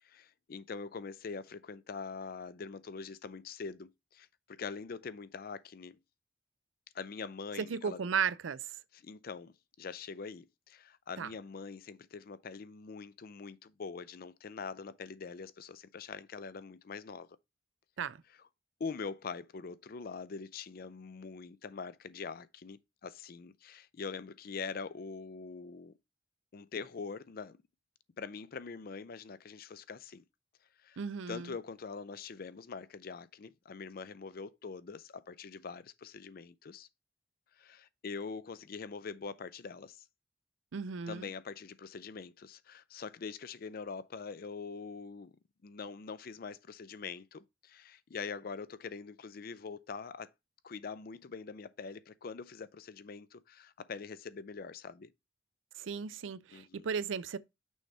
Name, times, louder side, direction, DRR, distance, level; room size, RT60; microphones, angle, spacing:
voice 1, 0.0-6.0 6.9-8.0 8.9-17.3 18.8-25.9 26.5-27.6 28.2-30.2 30.8-31.0 31.3-36.9 37.5-40.0 41.1-45.4 45.6-50.3 50.6-55.1 56.5-56.9, left 5 dB, 50° left, 0.4 m, -44 dB
voice 2, 7.7-8.6 11.2-11.3 18.0-18.2 31.0-31.5 40.7-41.3 55.8-57.4, right 6 dB, 85° right, 0.5 m, -35 dB
6.3 x 3.3 x 5.4 m
head